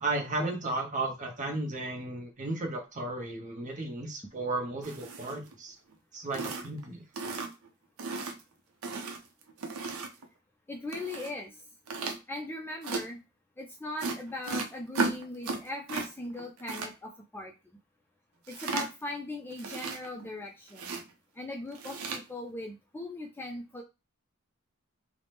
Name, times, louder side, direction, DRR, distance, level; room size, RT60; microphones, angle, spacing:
voice 1, 0.0-5.8 6.1-7.0, right 2 dB, 35° right, 3 dB, 0.7 m, -34 dB
sound 1, 4.8-5.5 5.9-6.0 6.3-6.8 7.2-7.7 8.0-8.4 8.8-10.3 10.9-11.3 11.9-12.2 12.8-13.0 14.0-16.1 16.3-16.9 18.5-19.1 19.5-20.3 20.7-21.0 21.7-22.2, right 3 dB, 90° right, 0.6 m, -35 dB
voice 2, 10.7-11.6 12.3-13.2 13.6-17.5 18.5-21.0 21.3-23.8, left 1 dB, 10° left, 1 dB, 0.3 m, -39 dB
2.8 x 2.0 x 3.3 m, 0.27 s
head